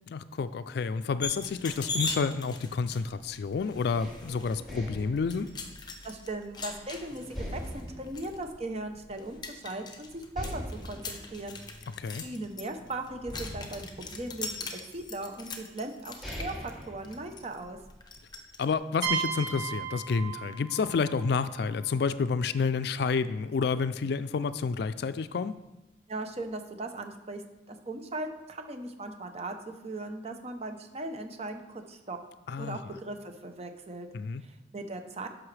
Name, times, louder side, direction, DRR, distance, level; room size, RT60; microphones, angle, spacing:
voice 1, 0.1-5.5 12.0-12.2 18.6-25.6 32.5-32.9 34.1-34.4, left 5 dB, 60° left, 13 dB, 0.3 m, -29 dB
sound 1, 1.2-18.6, left 3 dB, 25° left, 0.8 m, -41 dB
sound 2, 4.0-6.8 7.3-9.3 9.6-9.7 10.3-12.7 13.2-14.8 15.6-15.7 16.0-17.8, equal, ahead, 2.5 m, -42 dB
voice 2, 6.0-11.6 12.1-17.8 26.1-27.4 27.7-32.2 32.6-34.1 34.4-35.3, right 2 dB, 35° right, 6 dB, 0.8 m, -38 dB
sound 3, 19.0-22.6, right 7 dB, 80° right, 1.4 m, -36 dB
10.5 x 6.2 x 3.3 m, 0.99 s
head